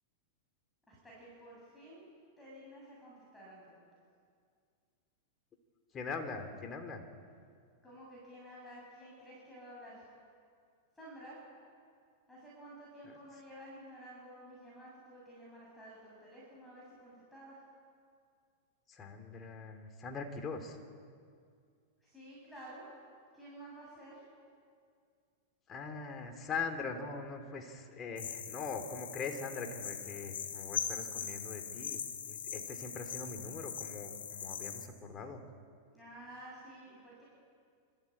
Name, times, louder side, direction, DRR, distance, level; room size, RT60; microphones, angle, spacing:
voice 1, 0.9-2.1 2.4-3.9 7.8-10.1 11.0-11.4 12.3-17.6 22.0-22.8 23.3-24.2 35.9-37.2, right 1 dB, 10° left, -6 dB, 7.4 m, -52 dB
voice 2, 5.9-7.0 18.9-20.8 25.7-35.4, left 4 dB, 25° left, 5 dB, 3.2 m, -42 dB
sound 1, 28.2-34.9, left 7 dB, 85° left, 2.6 m, -41 dB
26.5 x 14.5 x 8.7 m, 2.2 s
hypercardioid pair, 115°, 0 cm